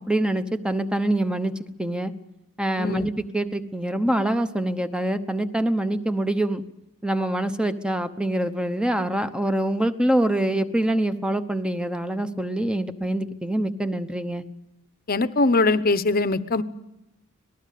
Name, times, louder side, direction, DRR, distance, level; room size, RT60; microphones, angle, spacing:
voice 1, 0.1-1.5 1.8-2.1 2.6-6.6 7.0-14.4, right 1 dB, 5° right, 10 dB, 1.0 m, -25 dB
voice 2, 2.8-3.1 15.1-16.6, left 3 dB, 45° left, 14 dB, 0.9 m, -21 dB
26.5 x 19.0 x 8.5 m, 0.89 s
head